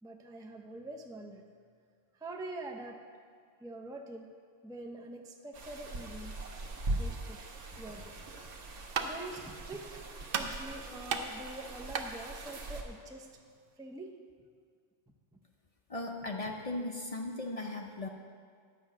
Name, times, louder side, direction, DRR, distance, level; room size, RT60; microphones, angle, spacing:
voice 1, 0.0-1.4 2.1-3.0 3.6-4.3 4.6-6.4 7.0-7.4 7.8-8.3 9.0-13.4 13.8-14.2, right 2 dB, 5° right, 2 dB, 0.4 m, -45 dB
sound 1, 5.5-12.8, right 2 dB, 80° right, 1.3 m, -41 dB
sound 2, 8.4-13.7, right 5 dB, 55° right, 0.8 m, -39 dB
voice 2, 15.9-18.1, left 2 dB, 40° left, 2 dB, 0.6 m, -37 dB
10.0 x 5.8 x 7.5 m, 2.1 s
omnidirectional pair, 1.2 m